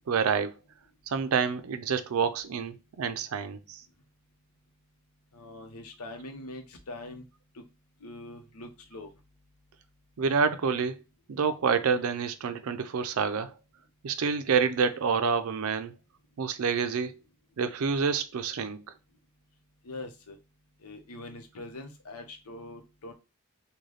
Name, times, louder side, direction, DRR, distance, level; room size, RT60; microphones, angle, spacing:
voice 1, 0.1-0.5 1.1-3.8 10.2-11.0 11.3-13.6 14.0-15.9 16.4-17.2 17.6-18.8, right 6 dB, 75° right, 0.4 m, -28 dB
voice 2, 5.3-7.2 7.5-7.6 8.0-9.1 19.8-20.4 20.8-23.1, left 2 dB, 85° left, 0.8 m, -43 dB
3.2 x 2.3 x 3.8 m
head